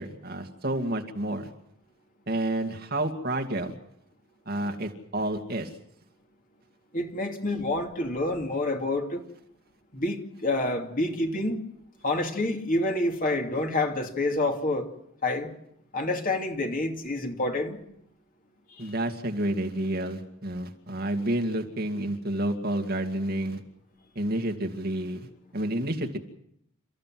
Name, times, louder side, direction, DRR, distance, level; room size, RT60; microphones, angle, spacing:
voice 1, 0.0-1.5 2.3-3.8 4.5-5.7 18.8-23.6 24.2-25.3 25.5-26.2, right 1 dB, 45° right, 4 dB, 2.2 m, -30 dB
voice 2, 6.9-9.2 9.9-11.6 12.0-14.9 15.2-15.5 15.9-17.8, left 2 dB, 40° left, 3 dB, 2.6 m, -28 dB
30.0 x 14.5 x 7.6 m, 0.74 s
head